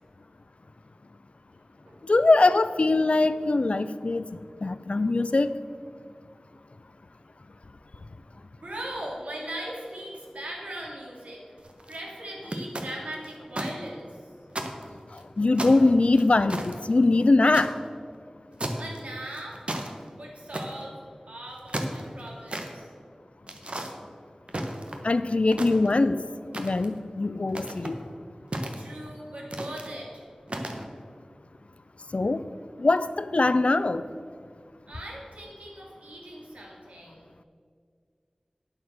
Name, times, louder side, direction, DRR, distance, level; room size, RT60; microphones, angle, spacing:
voice 1, 2.0-5.5 15.1-17.7 25.0-26.2 26.5-28.0 32.1-32.5 32.8-34.0, left 2 dB, 65° left, 13 dB, 0.4 m, -22 dB
voice 2, 8.6-11.4 11.9-14.3 18.8-19.6 20.2-20.9 21.3-22.9 28.8-30.3 34.9-37.3, right 1 dB, 80° right, -2 dB, 2.6 m, -39 dB
sound 1, 11.6-12.0 12.5-13.7 14.1-14.2 14.5-15.2 15.6-17.7 18.6-19.0 19.3-19.9 20.5-20.9 21.5-22.7 23.5-23.9 24.5-25.1 25.5-26.1 26.5-27.0 27.5-28.0 28.5-29.1 29.5-29.9 30.5-30.8, right 1 dB, 55° right, 1.2 m, -34 dB
9.1 x 8.0 x 6.5 m, 2.2 s
wide cardioid pair, 45°, 2 cm